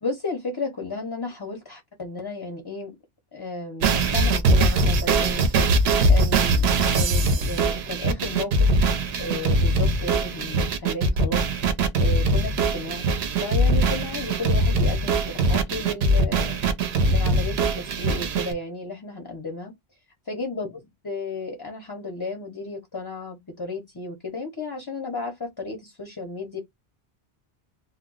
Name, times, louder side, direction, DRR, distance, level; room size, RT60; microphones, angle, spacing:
voice 1, 0.0-3.0 3.3-8.7 9.2-11.4 11.9-13.1 13.4-16.6 17.1-19.7 20.3-26.6, left 3 dB, 30° left, 0.4 m, -33 dB
sound 1, 3.8-18.5, right 2 dB, 85° right, 0.8 m, -21 dB
2.1 x 2.0 x 3.7 m
omnidirectional pair, 1.0 m